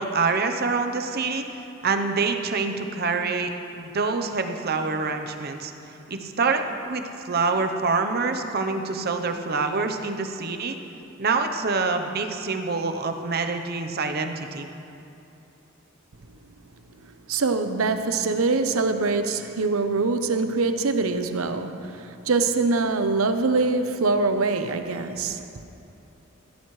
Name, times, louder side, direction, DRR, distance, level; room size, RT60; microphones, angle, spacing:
voice 1, 0.0-5.7 6.1-10.8 11.2-14.7, right 4 dB, 50° right, 6 dB, 0.8 m, -26 dB
voice 2, 17.0-25.4, right 3 dB, 85° right, 8 dB, 0.7 m, -24 dB
15.5 x 14.0 x 3.2 m, 2.8 s
head